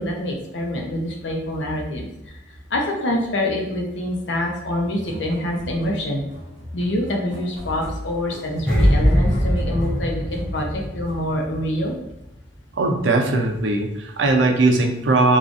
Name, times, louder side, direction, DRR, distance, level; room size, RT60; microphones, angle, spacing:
voice 1, 0.0-2.1 2.7-6.2 6.7-12.0, left 1 dB, 75° left, 1 dB, 0.7 m, -25 dB
sound 1, 4.9-11.2, equal, 45° right, 1.1 m, -37 dB
sound 2, 8.7-11.9 12.1-12.4, equal, 5° left, 0.4 m, -21 dB
voice 2, 12.8-15.4, right 2 dB, 75° right, 2 dB, 0.5 m, -19 dB
3.6 x 2.4 x 2.5 m, 0.87 s
head